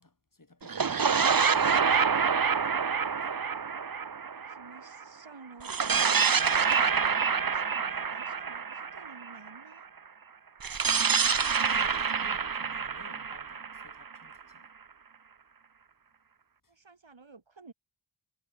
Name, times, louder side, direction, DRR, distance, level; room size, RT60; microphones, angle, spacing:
voice 1, 0.0-2.0 10.9-11.3 11.6-14.7 16.6-16.7, left 2 dB, 45° left, 4.8 m, -56 dB
sound 1, 0.6-5.0 5.6-9.6 10.6-14.4, right 6 dB, 50° right, 0.9 m, -27 dB
voice 2, 4.3-9.9 16.7-17.7, right 4 dB, 80° right, 5.0 m, -52 dB
wide cardioid pair, 55°, 45 cm